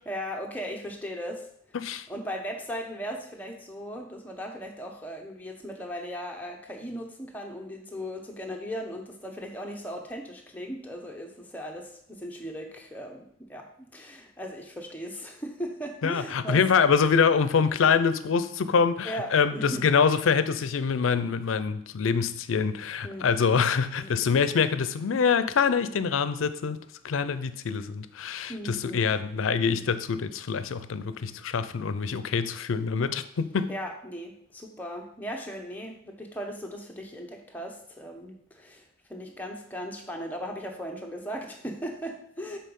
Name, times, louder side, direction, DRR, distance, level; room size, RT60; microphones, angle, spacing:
voice 1, 0.1-1.5 2.1-13.7 13.9-16.6 19.0-19.8 23.0-23.3 23.9-24.1 28.5-29.1 33.7-42.6, equal, 10° left, 0.8 m, -37 dB
voice 2, 1.7-2.1 16.0-26.8 27.0-33.7, left 6 dB, 90° left, 0.5 m, -25 dB
6.5 x 3.9 x 5.3 m
head